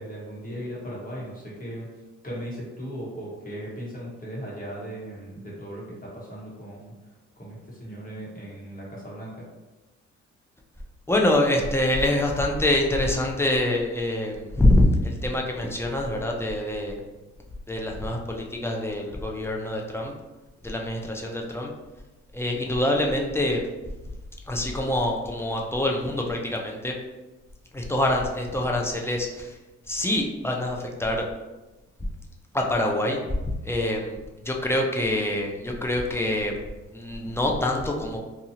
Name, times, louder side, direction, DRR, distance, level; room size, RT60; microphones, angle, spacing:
voice 1, 0.0-1.9 2.2-7.1 7.4-9.4, equal, 30° left, -5 dB, 1.1 m, -37 dB
voice 2, 11.1-17.0 17.7-20.1 20.6-21.7 22.3-23.6 24.5-26.9 27.7-29.6 29.9-31.3 32.5-33.2 33.7-34.2 34.4-36.5 36.9-38.2, left 1 dB, 10° left, 0 dB, 0.4 m, -25 dB
2.8 x 2.3 x 2.7 m, 1.1 s
cardioid pair, 90°, 30 cm